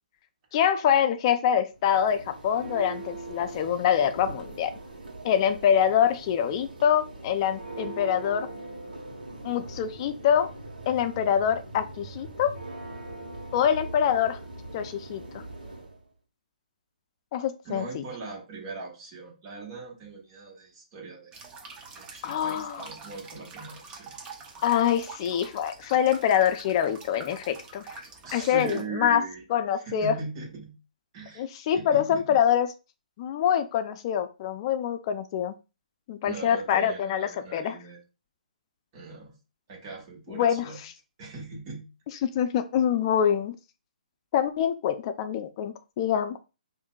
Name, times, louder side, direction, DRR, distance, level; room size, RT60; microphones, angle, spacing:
voice 1, 0.5-4.7 5.2-8.5 9.4-10.5 10.9-12.5 13.5-14.4 14.7-15.4 17.3-18.0 22.2-22.8 24.6-28.0 28.3-29.2 29.5-30.1 31.4-32.7 33.2-35.5 36.1-37.7 40.3-40.7 42.2-43.6 44.3-46.4, left 9 dB, 35° left, 10 dB, 0.5 m, -25 dB
Church bell, 1.7-16.0, right 2 dB, 85° right, 1.2 m, -41 dB
voice 2, 17.7-21.3 21.9-24.1 28.0-29.4 29.8-30.7 31.1-31.5 31.7-32.4 36.2-38.0 38.9-39.3 39.7-40.8 41.2-41.9, right 3 dB, 35° right, -3 dB, 1.7 m, -40 dB
sound 1, 21.3-28.8, right 4 dB, 20° right, 0.7 m, -45 dB
5.5 x 2.6 x 2.3 m, 0.30 s
hypercardioid pair, 140°, 5 cm